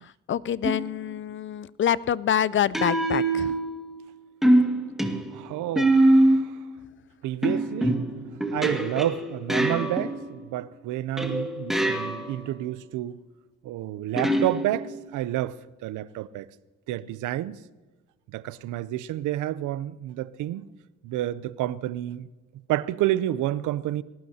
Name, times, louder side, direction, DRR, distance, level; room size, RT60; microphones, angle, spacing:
voice 1, 0.0-3.5, left 9 dB, 40° left, 0.4 m, -26 dB
sound 1, 0.6-1.0 2.7-4.0 4.4-6.6 7.4-10.4 11.2-12.5 14.2-15.1, right 1 dB, ahead, 1.9 m, -24 dB
voice 2, 5.3-6.5 7.2-8.0 8.5-13.2 13.6-15.5 15.8-16.5 16.9-17.6 18.3-20.7 21.0-22.3 22.7-24.0, right 14 dB, 85° right, 0.6 m, -29 dB
20.5 x 18.5 x 2.8 m
cardioid pair, 90°, 30 cm